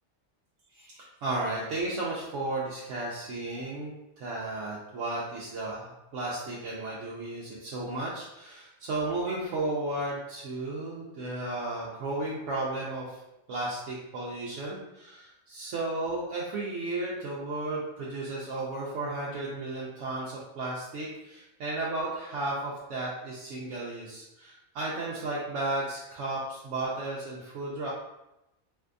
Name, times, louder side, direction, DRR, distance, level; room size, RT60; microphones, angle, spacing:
voice 1, 0.7-13.2 13.5-27.9, right 2 dB, 85° right, -5 dB, 0.9 m, -34 dB
3.4 x 2.6 x 2.5 m, 0.91 s
omnidirectional pair, 1.2 m